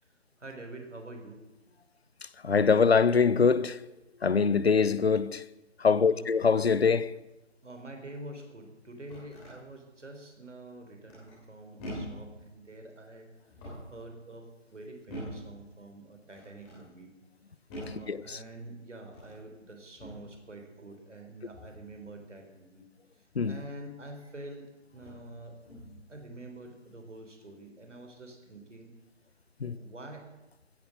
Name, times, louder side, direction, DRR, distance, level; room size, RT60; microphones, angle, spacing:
voice 1, 0.4-1.4 5.9-6.3 7.6-13.3 13.9-17.2 17.8-22.9 23.2-25.6 26.1-29.0 29.6-30.3, right 2 dB, 75° right, 3.7 m, -46 dB
voice 2, 2.4-3.8 4.2-5.4 5.8-7.1 18.1-18.4 23.4-23.5 29.6-29.8, left 5 dB, 60° left, 0.7 m, -23 dB
sound 1, 8.8-9.6 11.1-11.5 11.8-12.3 13.4-14.0 15.1-15.5 16.3-16.8 17.7-18.1 19.0-19.4 20.0-20.3 21.5-21.8 24.0-24.1 24.9-25.3 25.6-26.0, equal, 5° left, 3.1 m, -43 dB
15.5 x 9.5 x 7.5 m
figure-of-eight pair, 170°, 36 cm